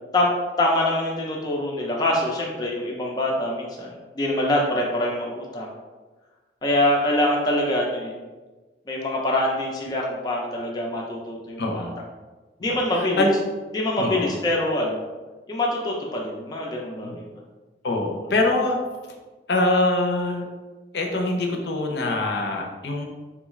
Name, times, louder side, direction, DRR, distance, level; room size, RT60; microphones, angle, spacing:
voice 1, 0.6-5.7 6.6-8.2 8.9-11.9 12.6-13.2 13.7-15.0 15.5-17.2, left 1 dB, 20° left, -2 dB, 0.4 m, -24 dB
voice 2, 11.6-12.0 12.6-13.4 14.0-14.3 17.0-17.2 17.8-18.8 19.5-20.4 20.9-23.0, left 2 dB, 70° left, 1 dB, 0.5 m, -24 dB
3.6 x 2.3 x 3.0 m, 1.3 s
head